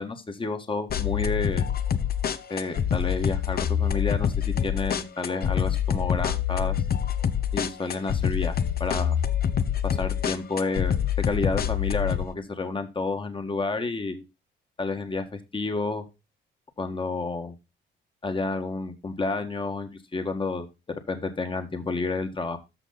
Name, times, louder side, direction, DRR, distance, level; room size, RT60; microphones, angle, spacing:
voice 1, 0.0-1.6 2.5-6.7 7.5-9.1 9.8-11.0 11.3-14.2 14.8-16.0 16.8-17.5 18.2-22.6, left 3 dB, 25° left, 7 dB, 1.6 m, -30 dB
sound 1, 0.9-12.2, left 8 dB, 50° left, 0.9 m, -26 dB
13.5 x 5.5 x 4.0 m, 0.26 s
cardioid pair, 90°, 20 cm